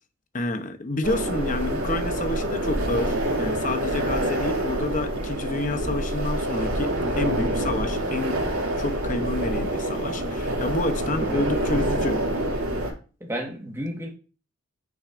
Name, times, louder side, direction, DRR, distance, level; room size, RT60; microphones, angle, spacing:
voice 1, 0.3-8.4 8.8-12.2, left 2 dB, 35° left, 0.7 m, -29 dB
sound 1, 1.0-12.9, right 1 dB, 90° right, 2.6 m, -26 dB
voice 2, 13.2-14.1, equal, 10° right, 1.4 m, -32 dB
10.0 x 6.1 x 2.5 m
head